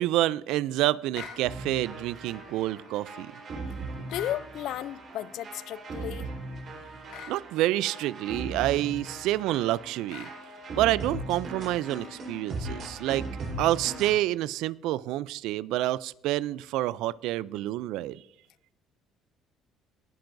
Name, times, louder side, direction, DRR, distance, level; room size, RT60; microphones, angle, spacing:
voice 1, 0.0-3.3 7.3-10.3 10.8-13.3 13.6-18.2, right 15 dB, 80° right, 0.3 m, -28 dB
sound 1, 1.1-1.4 4.1-4.4 7.1-7.4 10.1-10.4, left 6 dB, 85° left, 2.6 m, -41 dB
sound 2, 1.4-14.1, right 2 dB, 45° right, 4.1 m, -39 dB
voice 2, 4.0-6.3, left 13 dB, 65° left, 0.3 m, -34 dB
18.5 x 10.5 x 2.6 m
cardioid pair, 130°, 0 cm